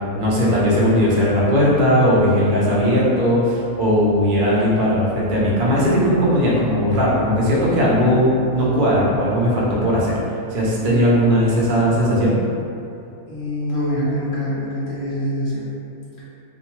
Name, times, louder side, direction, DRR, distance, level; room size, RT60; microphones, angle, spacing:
voice 1, 0.2-10.2 10.5-12.3, equal, 55° right, -6 dB, 0.6 m, -18 dB
voice 2, 13.3-15.7, equal, 30° left, -9 dB, 0.4 m, -24 dB
2.6 x 2.1 x 2.9 m, 2.6 s
omnidirectional pair, 1.5 m